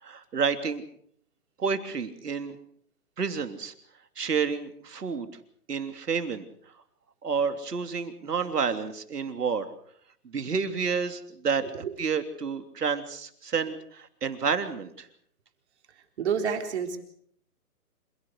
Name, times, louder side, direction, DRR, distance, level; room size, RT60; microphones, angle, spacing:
voice 1, 0.0-0.8 1.6-2.6 3.2-3.7 4.2-5.3 5.7-6.4 7.2-9.7 10.2-15.1, right 5 dB, 75° right, 8 dB, 3.2 m, -29 dB
voice 2, 16.2-17.0, right 7 dB, 45° right, 5 dB, 3.8 m, -28 dB
27.0 x 17.5 x 6.6 m, 0.65 s
hypercardioid pair, 160°, 47 cm